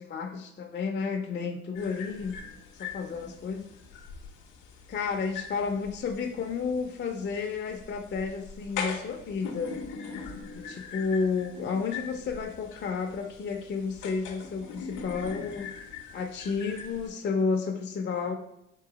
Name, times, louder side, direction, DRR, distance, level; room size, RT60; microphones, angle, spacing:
voice 1, 0.0-2.4 2.7-3.7 4.9-9.8 10.6-15.7 16.1-18.3, left 5 dB, 35° left, 3 dB, 0.5 m, -31 dB
sound 1, 1.7-17.1, left 5 dB, 85° left, 0.7 m, -42 dB
3.8 x 2.6 x 3.9 m, 0.81 s
cardioid pair, 90°, 30 cm